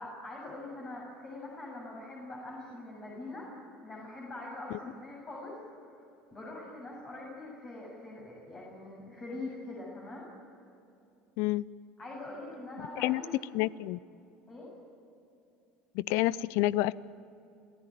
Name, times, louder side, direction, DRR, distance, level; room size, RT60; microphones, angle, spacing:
voice 1, 0.0-3.5 3.8-5.6 5.9-6.0 6.3-10.2 12.0-13.3 14.5-14.7, left 2 dB, 30° left, -4 dB, 7.7 m, -43 dB
voice 2, 13.5-14.0 15.9-16.9, left 17 dB, 65° left, 21 dB, 0.6 m, -28 dB
28.0 x 15.5 x 9.3 m, 2.7 s
hypercardioid pair, 80°, 5 cm